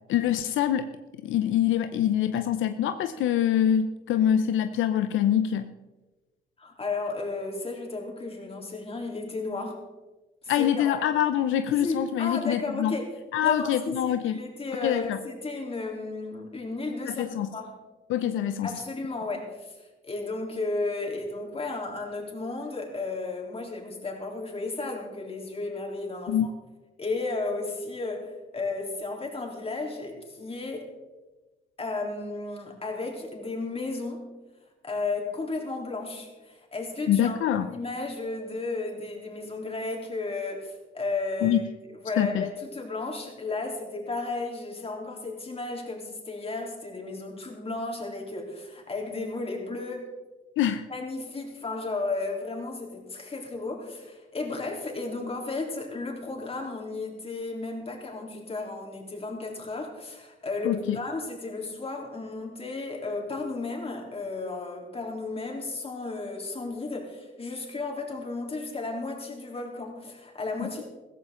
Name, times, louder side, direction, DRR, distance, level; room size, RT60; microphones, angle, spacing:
voice 1, 0.1-0.9 1.2-5.7 10.5-13.0 13.3-14.4 14.8-15.2 17.1-17.5 18.1-18.8 26.3-26.5 37.1-37.7 41.4-41.6 42.2-42.4 50.6-50.8 60.6-61.0 70.6-70.7, left 10 dB, 80° left, 9 dB, 0.7 m, -25 dB
voice 2, 6.6-9.8 10.4-11.0 11.7-13.2 13.4-13.7 14.0-17.3 17.5-17.8 18.6-26.5 27.0-30.9 31.8-34.4 34.8-41.7 41.9-50.1 50.9-70.8, left 3 dB, 30° left, 0 dB, 3.6 m, -34 dB
15.5 x 14.5 x 3.8 m, 1.2 s
cardioid pair, 90°, 20 cm